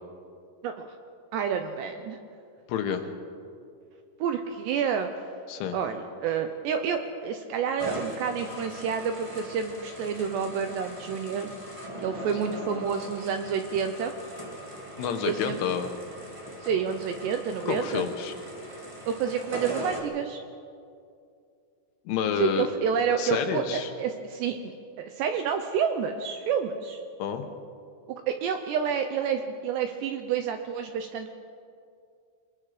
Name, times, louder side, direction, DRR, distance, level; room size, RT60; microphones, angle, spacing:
voice 1, 1.3-2.2 4.2-5.1 5.7-11.5 12.0-14.1 15.2-15.6 16.6-18.1 19.1-20.4 22.4-24.6 25.0-27.0 28.1-31.4, right 7 dB, 75° right, 6 dB, 2.6 m, -29 dB
voice 2, 2.7-3.1 5.5-5.8 15.0-15.9 17.7-18.3 22.1-22.7 23.2-23.9 27.2-27.5, left 8 dB, 75° left, 6 dB, 3.5 m, -29 dB
sound 1, 7.8-20.0, equal, 35° right, 0.5 m, -40 dB
26.5 x 20.5 x 5.1 m, 2.4 s
omnidirectional pair, 5.8 m